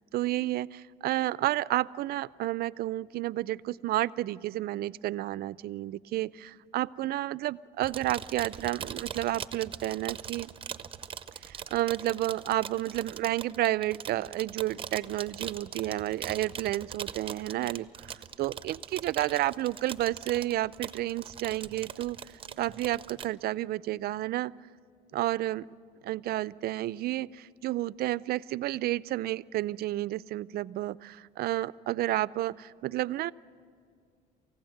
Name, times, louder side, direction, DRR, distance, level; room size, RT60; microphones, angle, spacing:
voice 1, 0.1-10.5 11.4-17.9 18.4-22.2 22.6-24.5 25.1-25.6 26.0-33.3, right 15 dB, 65° right, 18 dB, 0.5 m, -31 dB
sound 1, 7.8-23.3, right 7 dB, 30° right, 0.8 m, -41 dB
28.5 x 16.0 x 7.9 m, 2.2 s
cardioid pair, 110°, 17 cm